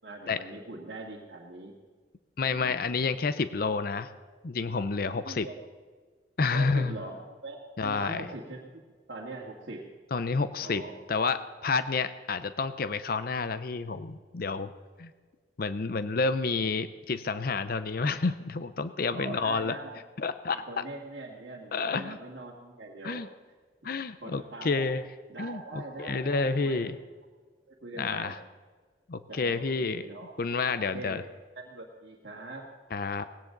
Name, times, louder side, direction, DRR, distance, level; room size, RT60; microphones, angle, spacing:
voice 1, 0.0-1.7 2.4-2.8 3.2-3.4 5.2-5.5 6.5-8.8 9.1-9.8 10.6-10.9 19.1-20.0 20.7-23.2 23.8-23.9 24.2-24.9 25.3-26.9 27.7-28.4 29.3-30.3 30.8-31.2 31.6-32.7, right 2 dB, 65° right, -4 dB, 2.0 m, -42 dB
voice 2, 2.4-4.1 4.4-5.5 6.4-6.9 7.8-8.3 10.1-10.8 11.1-14.7 15.0-15.1 15.6-19.8 20.2-20.8 21.7-22.2 23.0-23.3 23.8-25.0 25.4-27.0 28.0-28.4 29.1-30.0 30.4-31.2 32.9-33.2, left 4 dB, 50° left, 12 dB, 0.6 m, -29 dB
19.0 x 17.0 x 3.9 m, 1.5 s
head